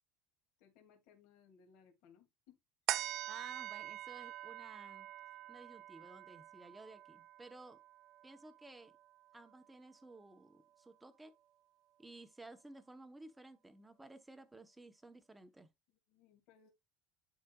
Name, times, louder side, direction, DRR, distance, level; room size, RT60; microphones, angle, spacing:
voice 1, 0.6-2.6 15.9-16.7, left 7 dB, 55° left, 2.2 m, -65 dB
sound 1, 2.9-9.6 10.1-10.2, right 13 dB, 40° right, 0.4 m, -45 dB
voice 2, 3.3-5.1 5.5-7.8 8.2-8.9 9.3-11.3 12.0-15.7, right 2 dB, 5° right, 0.8 m, -55 dB
10.5 x 4.9 x 2.3 m
cardioid pair, 175°, 0 cm